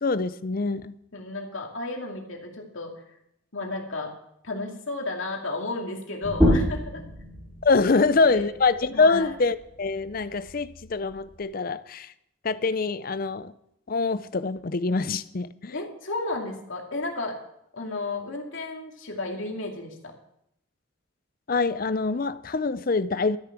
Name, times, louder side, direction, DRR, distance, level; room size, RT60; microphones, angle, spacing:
voice 1, 0.0-0.9 7.6-12.1 12.4-13.5 13.9-15.7 21.5-23.4, left 4 dB, 45° left, 15 dB, 0.5 m, -24 dB
voice 2, 1.1-2.9 3.5-4.1 4.4-7.0 7.9-8.5 8.9-9.3 15.7-17.4 17.7-20.1, left 2 dB, 70° left, 1 dB, 2.5 m, -33 dB
sound 1, 6.2-11.4, equal, 5° right, 6.9 m, -29 dB
13.0 x 10.5 x 6.0 m, 0.77 s
head